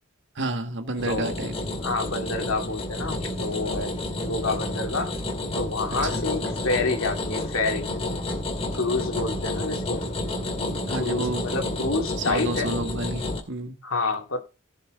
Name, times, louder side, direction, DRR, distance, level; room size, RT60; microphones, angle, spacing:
voice 1, 0.4-1.5 6.1-6.3 10.9-11.4 12.2-13.8, right 2 dB, 60° right, 1.8 m, -30 dB
voice 2, 1.0-1.4 1.8-4.0 4.2-5.2 5.5-7.9 8.7-10.1 11.0-12.8 13.8-14.4, left 3 dB, 70° left, 2.4 m, -28 dB
sound 1, 1.0-13.4, left 2 dB, 30° left, 2.3 m, -30 dB
16.0 x 6.5 x 3.8 m
head